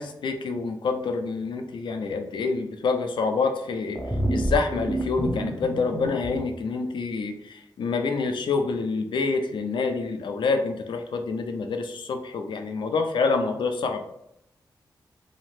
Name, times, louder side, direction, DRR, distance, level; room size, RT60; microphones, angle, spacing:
voice 1, 0.0-4.0 4.3-14.0, left 4 dB, 85° left, 6 dB, 0.4 m, -27 dB
sound 1, 3.9-6.4, right 1 dB, 15° left, 0.6 m, -28 dB
2.9 x 2.0 x 3.0 m, 0.80 s
cardioid pair, 60°, 8 cm